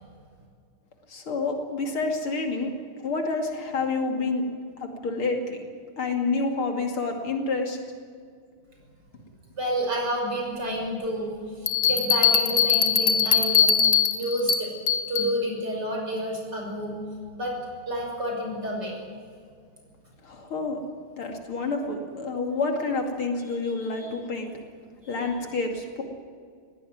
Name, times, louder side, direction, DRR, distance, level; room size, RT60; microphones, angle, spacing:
voice 1, 1.1-2.7 3.0-4.4 4.8-5.6 6.0-7.8 20.2-20.8 21.2-24.5 25.0-26.0, left 3 dB, 70° left, 3 dB, 3.3 m, -28 dB
voice 2, 9.6-11.3 11.6-13.8 14.2-14.7 15.1-16.9 17.4-17.6 17.9-18.9 23.6-24.1 25.0-25.3, equal, 50° right, 0 dB, 7.0 m, -30 dB
Bell, 11.7-15.3, left 7 dB, 50° left, 1.5 m, -21 dB
20.5 x 17.5 x 9.4 m, 2.1 s
omnidirectional pair, 2.4 m